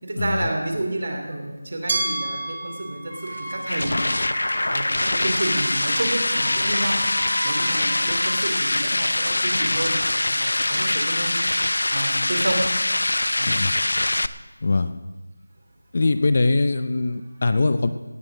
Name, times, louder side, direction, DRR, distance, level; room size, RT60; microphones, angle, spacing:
voice 1, 0.0-4.0 4.7-7.0 7.4-11.4 11.9-12.6 13.4-13.6, right 1 dB, 45° right, 4 dB, 3.0 m, -30 dB
Glass, 1.9-4.8, right 2 dB, 20° right, 1.1 m, -31 dB
Wind instrument woodwind instrument, 3.1-8.3, equal, 5° left, 4.8 m, -35 dB
sound 1, 3.3-14.3, left 2 dB, 75° left, 0.7 m, -23 dB
voice 2, 14.6-14.9 15.9-17.9, left 3 dB, 30° left, 11 dB, 0.5 m, -21 dB
18.0 x 11.0 x 5.0 m, 1.1 s
figure-of-eight pair, 180°, 0 cm